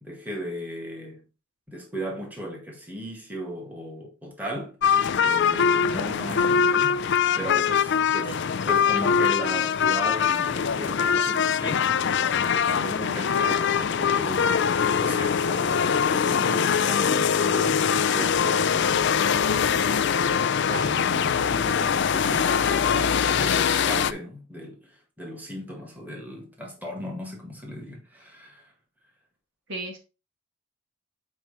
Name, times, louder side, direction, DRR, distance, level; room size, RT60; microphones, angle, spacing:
voice 1, 0.0-1.3 1.7-4.8 5.2-7.0 7.4-19.2 19.7-20.4 20.8-28.7, equal, 10° right, 1.9 m, -37 dB
sound 1, 4.8-24.1, left 7 dB, 50° left, 0.4 m, -23 dB
voice 2, 7.9-8.4 17.0-17.5 20.7-20.9 21.7-22.1 29.7-30.0, right 2 dB, 55° right, 1.9 m, -38 dB
7.4 x 4.6 x 4.2 m
head